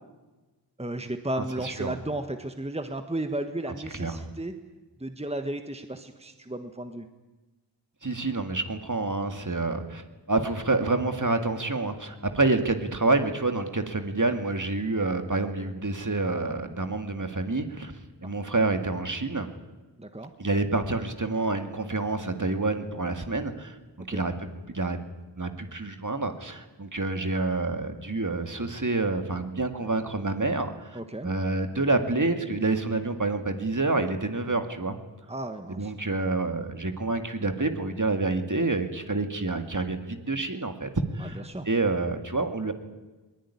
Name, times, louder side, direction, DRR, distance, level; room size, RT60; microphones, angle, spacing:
voice 1, 0.8-4.5 5.0-7.1 20.0-20.3 24.1-24.3 30.9-31.3 35.3-35.9 41.5-41.7, right 1 dB, 15° right, 7 dB, 1.5 m, -34 dB
voice 2, 1.3-2.0 3.9-4.3 8.0-10.0 10.3-17.9 18.2-19.5 20.4-25.0 25.4-35.0 35.7-42.7, right 3 dB, 45° right, 7 dB, 2.3 m, -28 dB
21.5 x 20.0 x 9.9 m, 1.2 s
wide cardioid pair, 50°, 43 cm